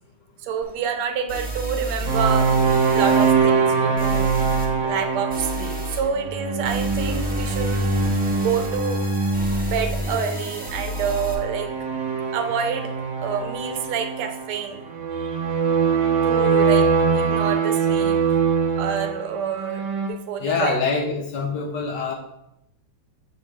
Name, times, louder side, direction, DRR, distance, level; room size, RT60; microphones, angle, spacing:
voice 1, 0.4-2.5 2.9-4.3 4.8-7.8 8.4-9.0 9.6-11.7 12.3-12.9 13.2-14.8 15.1-15.4 16.2-18.2 18.7-20.8, right 7 dB, 85° right, 6 dB, 1.6 m, -28 dB
sound 1, 0.6-0.7 1.3-3.3 4.0-4.7 5.3-6.0 6.6-11.3, right 1 dB, 15° right, 0.3 m, -31 dB
sound 2, 2.1-20.1, right 5 dB, 60° right, 1.1 m, -23 dB
voice 2, 20.4-22.1, left 4 dB, 65° left, 1 dB, 1.2 m, -24 dB
7.0 x 5.5 x 3.3 m, 0.84 s
omnidirectional pair, 2.3 m